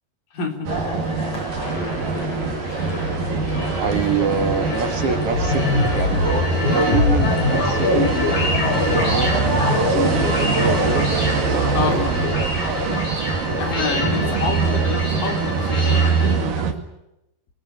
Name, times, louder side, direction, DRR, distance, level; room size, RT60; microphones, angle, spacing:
voice 1, 0.3-0.7 11.7-12.5 13.6-16.7, left 4 dB, 75° left, 4 dB, 5.0 m, -29 dB
sound 1, 0.7-14.5, left 1 dB, 45° left, 7.5 m, -31 dB
sound 2, 0.7-16.7, right 4 dB, 75° right, 3.8 m, -23 dB
sound 3, 1.4-16.3, left 3 dB, 90° left, 8.2 m, -25 dB
voice 2, 2.0-2.6 2.9-3.0 3.8-8.2 8.9-11.1 11.5-12.0 12.4-12.6, right 5 dB, 50° right, 7 dB, 2.5 m, -26 dB
23.0 x 20.5 x 9.9 m, 0.88 s
omnidirectional pair, 3.9 m